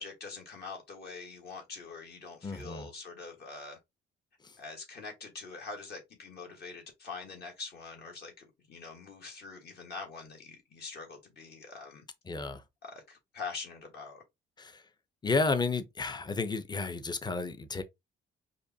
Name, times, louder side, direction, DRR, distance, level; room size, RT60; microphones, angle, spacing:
voice 1, 0.0-3.8 4.6-12.0 12.8-14.2, left 4 dB, 55° left, 1.4 m, -44 dB
voice 2, 2.4-2.9 4.4-4.5 12.3-12.6 14.6-14.8 15.2-17.8, left 3 dB, 20° left, 0.6 m, -32 dB
5.1 x 2.2 x 2.7 m
cardioid pair, 90°, 20 cm